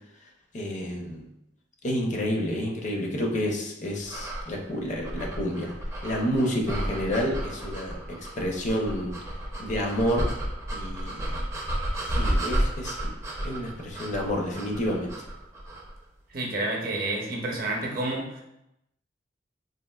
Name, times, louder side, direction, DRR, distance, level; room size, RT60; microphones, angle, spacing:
voice 1, 0.5-1.3 1.8-5.7 6.0-9.1 9.6-10.3 10.7-11.4 12.0-15.1, equal, 40° left, 0 dB, 0.5 m, -29 dB
sound 1, 4.1-16.0, right 1 dB, 15° right, 0.4 m, -32 dB
voice 2, 16.3-18.4, right 2 dB, 55° right, 0 dB, 0.6 m, -29 dB
3.4 x 2.5 x 2.2 m, 0.84 s
head